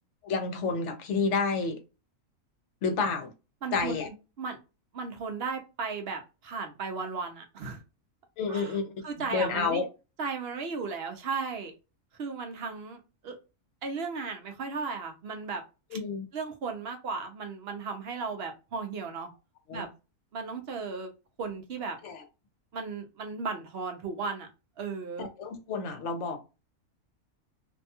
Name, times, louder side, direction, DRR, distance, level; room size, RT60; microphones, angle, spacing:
voice 1, 0.2-1.8 2.8-3.3 3.7-4.1 8.4-9.9 15.9-16.3 19.7-19.9 22.0-22.2 25.2-26.4, left 4 dB, 65° left, 0.9 m, -30 dB
voice 2, 3.6-4.1 4.4-4.6 4.9-7.8 8.5-8.7 9.0-9.8 10.2-11.7 12.2-13.3 13.8-15.6 16.3-19.3 19.7-19.9 20.3-21.1 21.4-22.0 22.7-24.5 24.8-25.3, right 4 dB, 60° right, 0.7 m, -35 dB
2.6 x 2.2 x 2.7 m
omnidirectional pair, 1.5 m